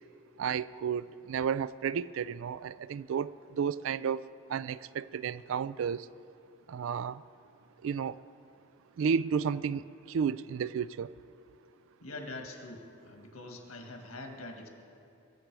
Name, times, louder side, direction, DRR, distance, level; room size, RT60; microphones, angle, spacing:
voice 1, 0.4-4.2 4.5-6.1 6.7-7.2 7.8-8.2 9.0-11.1, right 7 dB, 70° right, 0.3 m, -32 dB
voice 2, 12.0-14.7, left 2 dB, 85° left, 1.6 m, -44 dB
21.5 x 7.5 x 4.7 m
head